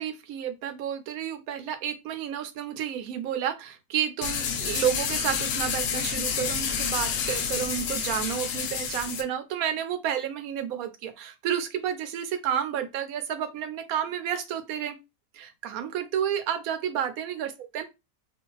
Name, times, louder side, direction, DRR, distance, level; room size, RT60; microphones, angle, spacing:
voice 1, 0.0-15.0 15.3-17.8, right 9 dB, 75° right, 9 dB, 1.1 m, -31 dB
sound 1, 4.2-9.2, left 7 dB, 70° left, 0.8 m, -29 dB
2.5 x 2.4 x 3.8 m, 0.24 s
omnidirectional pair, 1.5 m